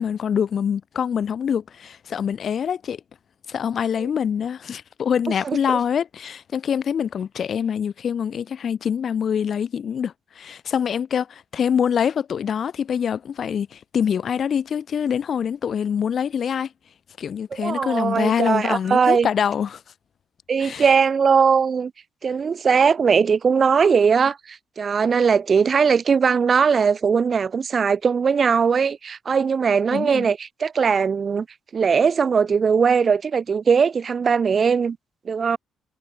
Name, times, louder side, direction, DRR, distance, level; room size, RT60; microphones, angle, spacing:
voice 1, 0.0-3.0 3.5-16.7 17.2-19.8 20.6-20.9 29.9-30.3, left 8 dB, 55° left, 0.8 m, -25 dB
voice 2, 5.4-5.8 17.5-19.3 20.5-21.9 22.2-31.5 31.7-35.0 35.2-35.6, right 6 dB, 45° right, 0.9 m, -20 dB
cardioid pair, 90°, 0 cm